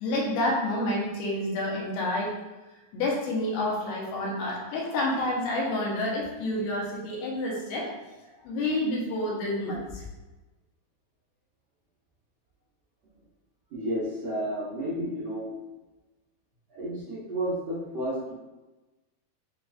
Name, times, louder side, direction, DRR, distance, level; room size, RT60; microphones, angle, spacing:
voice 1, 0.0-2.3 2.9-7.9 8.4-10.0, left 1 dB, 90° left, -3 dB, 2.6 m, -29 dB
voice 2, 13.7-15.6 16.7-18.3, right 1 dB, 75° right, -11 dB, 1.4 m, -31 dB
6.3 x 2.4 x 2.3 m, 1.1 s
omnidirectional pair, 4.2 m